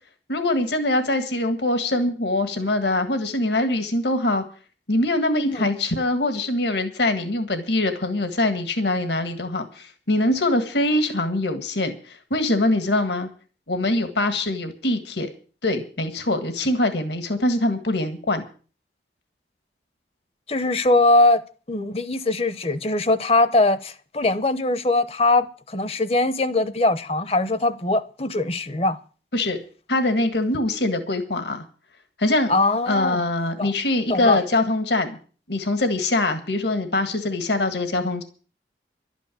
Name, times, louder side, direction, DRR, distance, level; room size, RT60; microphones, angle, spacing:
voice 1, 0.3-4.4 4.9-13.3 13.7-15.3 15.6-18.4 29.3-29.6 29.9-31.6 32.2-32.5 32.9-35.2 35.5-38.2, left 2 dB, 70° left, 1.8 m, -23 dB
voice 2, 20.5-21.4 21.7-29.0 32.5-33.2 33.6-33.7 34.1-34.4, left 2 dB, 35° left, 0.9 m, -21 dB
12.0 x 9.2 x 8.5 m
head